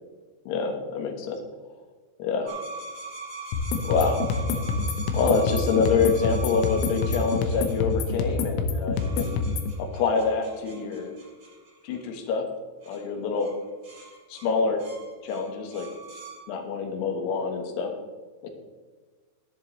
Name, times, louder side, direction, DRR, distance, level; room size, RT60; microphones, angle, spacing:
voice 1, 0.5-1.4 2.2-2.6 3.8-4.4 5.1-9.4 9.8-11.1 11.8-12.5 12.9-13.5 14.3-14.8 15.2-15.9 16.5-17.9 18.4-18.5, left 5 dB, 65° left, 4 dB, 3.1 m, -26 dB
sound 1, 2.5-8.4 8.9-12.3 12.8-13.0 13.4-13.6 13.8-16.4, right 3 dB, 35° right, 3.0 m, -42 dB
sound 2, 3.5-9.7, left 4 dB, 85° left, 3.6 m, -27 dB
14.0 x 11.5 x 3.2 m, 1.4 s
omnidirectional pair, 5.7 m